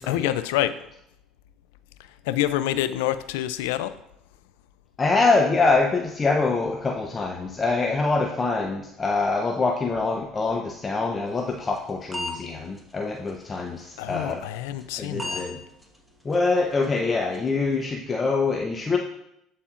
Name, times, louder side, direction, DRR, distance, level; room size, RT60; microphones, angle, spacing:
voice 1, 0.1-0.8 2.3-4.0 14.0-15.4, left 13 dB, 85° left, 14 dB, 0.3 m, -27 dB
voice 2, 5.0-14.4 15.0-15.6 16.2-19.0, left 3 dB, 30° left, 1 dB, 0.6 m, -24 dB
sound 1, 11.4-12.4 12.8-12.9 13.3-13.4 13.8-13.9 14.3-14.4 14.8-14.9 15.2-15.5 15.8-16.0 16.3-16.5 16.8-17.0 17.3-17.5, left 1 dB, 5° right, 1.2 m, -33 dB
12.0 x 4.2 x 2.4 m, 0.80 s
supercardioid pair, 85°, 0 cm